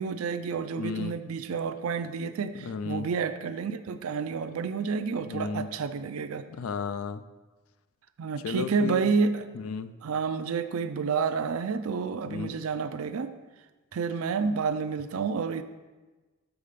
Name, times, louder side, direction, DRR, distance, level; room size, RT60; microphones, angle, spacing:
voice 1, 0.0-6.4 8.2-9.5 10.0-13.3 13.9-15.6, right 5 dB, 70° right, 10 dB, 0.4 m, -29 dB
voice 2, 0.8-1.2 2.6-3.1 5.2-5.7 6.5-7.2 8.4-9.0 9.6-9.9 12.3-12.5, left 5 dB, 75° left, 12 dB, 0.4 m, -33 dB
7.0 x 4.1 x 5.1 m, 1.2 s
head